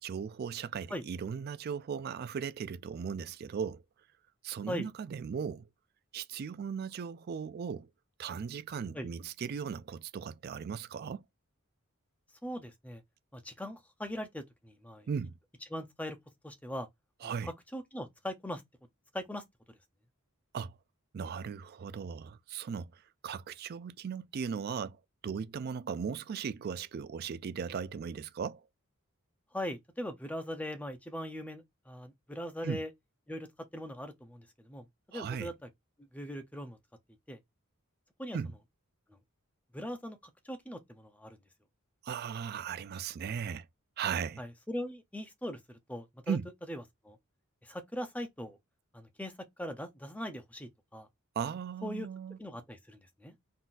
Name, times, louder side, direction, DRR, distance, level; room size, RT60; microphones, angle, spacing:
voice 1, 0.0-3.8 4.4-5.7 6.1-7.9 8.2-11.2 15.1-15.3 17.2-17.5 20.5-20.7 21.1-25.0 25.2-28.6 32.6-32.8 35.1-35.5 38.3-38.5 42.0-43.7 44.0-44.4 46.3-46.5 51.4-52.4, right 6 dB, 45° right, 0.3 m, -37 dB
voice 2, 12.4-13.0 13.3-15.1 15.7-16.2 16.4-16.9 17.2-18.6 19.1-19.8 29.5-32.9 33.3-35.7 36.1-36.8 37.3-37.4 38.2-38.4 39.7-41.4 44.4-46.4 46.7-47.2 47.6-48.6 48.9-51.1 51.8-52.1 52.4-53.3, equal, 5° left, 0.6 m, -40 dB
3.9 x 3.8 x 2.5 m
head